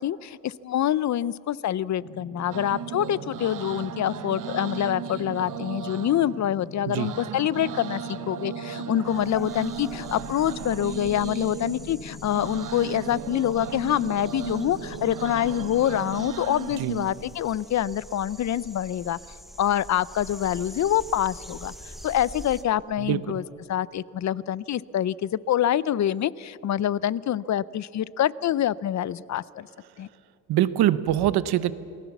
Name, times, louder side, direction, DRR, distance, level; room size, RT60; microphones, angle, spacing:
voice 1, 0.0-19.2 19.6-21.7 22.0-23.4 23.7-29.7 30.0-30.1, left 11 dB, 50° left, 20 dB, 0.6 m, -26 dB
sound 1, 2.0-16.3, left 4 dB, 80° left, 4.2 m, -43 dB
sound 2, 2.5-17.3, right 9 dB, 55° right, 1.0 m, -37 dB
sound 3, 9.0-22.6, equal, ahead, 1.1 m, -45 dB
voice 2, 23.0-23.4 30.5-31.7, right 12 dB, 85° right, 15 dB, 0.9 m, -24 dB
27.5 x 19.0 x 7.2 m, 2.6 s
cardioid pair, 110°, 37 cm